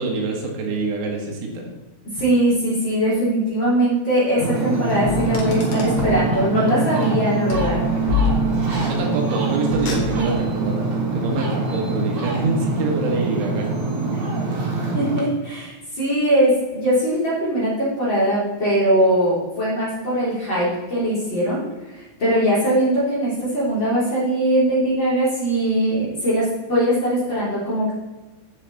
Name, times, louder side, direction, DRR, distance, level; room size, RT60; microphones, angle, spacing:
voice 1, 0.0-1.7 8.9-13.7 14.5-14.7, right 3 dB, 85° right, 1 dB, 4.1 m, -26 dB
voice 2, 2.1-7.9 14.0-14.2 14.9-21.6 22.2-28.0, right 1 dB, 25° left, -9 dB, 3.4 m, -21 dB
Ocean, 4.4-15.2, right 3 dB, 60° right, 1.7 m, -24 dB
Car, 5.0-6.3 7.5-8.8 9.7-10.5, left 6 dB, 65° left, 1.8 m, -26 dB
9.5 x 7.6 x 4.1 m, 1.1 s
omnidirectional pair, 5.5 m